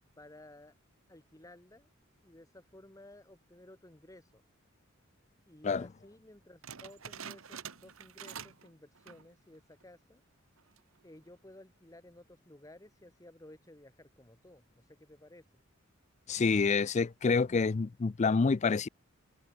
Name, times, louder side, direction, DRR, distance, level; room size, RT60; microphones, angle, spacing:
voice 1, 0.2-0.8 1.1-1.9 2.2-4.4 5.5-10.2 11.0-15.5, left 1 dB, 15° left, 1.9 m, -55 dB
sound 1, 6.6-8.7 9.0-9.3 9.8-9.9 10.6-11.0, right 7 dB, 75° right, 1.4 m, -46 dB
voice 2, 16.3-18.9, left 4 dB, 35° left, 0.4 m, -27 dB
head